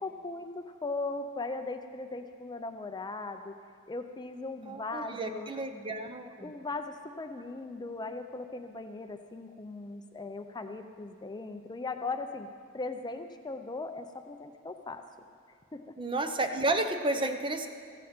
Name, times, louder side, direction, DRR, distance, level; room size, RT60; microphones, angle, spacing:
voice 1, 0.0-3.6 3.9-5.5 6.4-12.5 12.7-15.0 15.7-15.9, left 3 dB, 20° left, 6 dB, 0.5 m, -38 dB
voice 2, 4.7-6.5 16.0-17.7, right 2 dB, 25° right, 7 dB, 0.8 m, -31 dB
15.0 x 14.5 x 4.4 m, 2.2 s
head